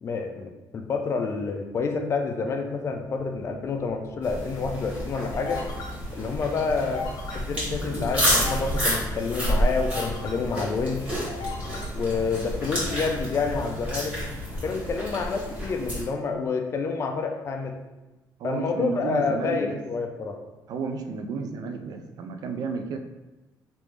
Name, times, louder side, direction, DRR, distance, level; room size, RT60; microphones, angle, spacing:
voice 1, 0.0-5.6 6.1-7.1 7.3-11.1 11.9-14.2 14.6-17.8 18.4-20.3, left 4 dB, 40° left, 4 dB, 0.4 m, -28 dB
sound 1, 3.1-15.6, left 3 dB, 70° left, 0.7 m, -40 dB
sound 2, 4.2-16.0, equal, 20° right, 1.3 m, -30 dB
voice 2, 18.4-19.8 20.7-23.0, right 4 dB, 60° right, 5 dB, 0.4 m, -32 dB
3.2 x 2.5 x 3.2 m, 1.1 s
cardioid pair, 135°, 7 cm